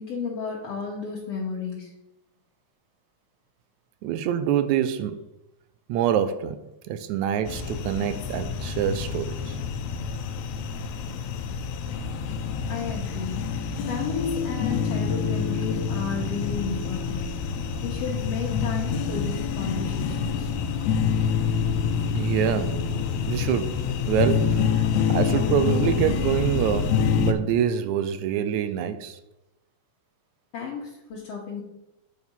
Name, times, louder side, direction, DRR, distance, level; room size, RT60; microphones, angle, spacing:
voice 1, 0.0-1.9 12.7-13.4 13.9-17.3 17.8-20.6 30.5-31.6, left 5 dB, 65° left, 2.1 m, -32 dB
voice 2, 4.0-5.2 5.9-9.6 22.1-22.9 23.3-23.8 24.1-24.8 25.1-29.2, right 9 dB, 80° right, 1.9 m, -26 dB
sound 1, 7.4-27.3, left 6 dB, 80° left, 1.9 m, -27 dB
8.9 x 4.3 x 5.4 m
omnidirectional pair, 3.3 m